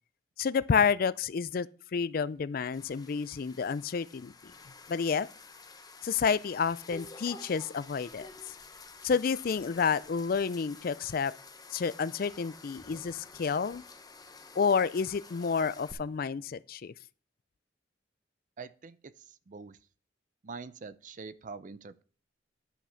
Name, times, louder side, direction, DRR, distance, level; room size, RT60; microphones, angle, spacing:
voice 1, 0.4-4.3 4.9-5.3 6.0-8.3 9.0-11.3 11.7-13.8 14.6-16.9, left 6 dB, 50° left, 0.4 m, -29 dB
sound 1, 2.7-15.9, left 3 dB, 20° left, 0.9 m, -50 dB
voice 2, 18.6-19.1 19.5-19.8 20.4-22.0, right 4 dB, 45° right, 0.5 m, -44 dB
11.0 x 5.9 x 5.7 m
head